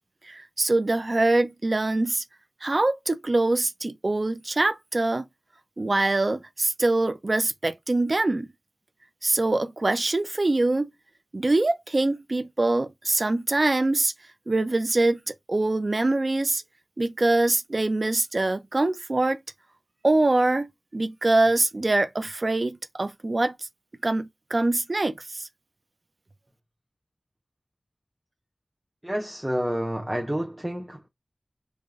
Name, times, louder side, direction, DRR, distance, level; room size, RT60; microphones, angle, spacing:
voice 1, 0.2-2.2 2.6-5.3 5.8-8.5 9.2-10.9 11.3-14.1 14.5-16.6 17.0-19.4 20.0-23.7 24.0-25.5, right 2 dB, 55° right, 0.4 m, -24 dB
voice 2, 29.0-31.1, equal, 10° right, 0.7 m, -29 dB
3.1 x 2.5 x 3.4 m
wide cardioid pair, 65°, 0 cm